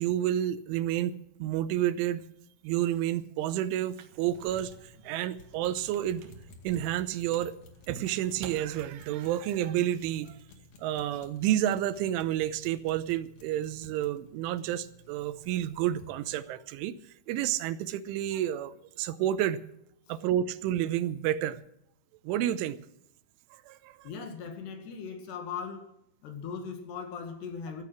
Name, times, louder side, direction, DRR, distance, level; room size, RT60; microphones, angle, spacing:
voice 1, 0.0-2.2 2.6-6.2 6.6-7.6 7.9-10.4 10.8-17.0 17.3-19.6 20.1-21.6 22.2-22.8 23.5-24.1, right 12 dB, 90° right, 13 dB, 3.3 m, -30 dB
sound 1, 3.8-9.3, right 8 dB, 65° right, 3.1 m, -49 dB
sound 2, 4.3-16.2, left 2 dB, 45° left, 2.5 m, -54 dB
voice 2, 24.0-25.9 26.2-27.8, left 6 dB, 65° left, 6 dB, 3.8 m, -39 dB
14.5 x 14.5 x 6.2 m, 0.76 s
omnidirectional pair, 5.5 m